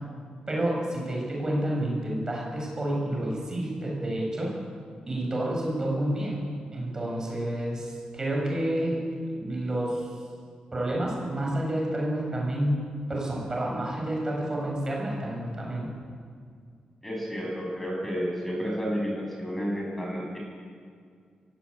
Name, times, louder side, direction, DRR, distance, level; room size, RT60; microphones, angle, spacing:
voice 1, 0.5-4.5 5.1-9.0 9.4-10.2 10.7-15.9, right 1 dB, 25° right, -2 dB, 7.5 m, -29 dB
voice 2, 17.0-20.4, equal, 10° left, -2 dB, 7.9 m, -31 dB
22.5 x 18.0 x 8.8 m, 2.2 s
cardioid pair, 100°, 2 cm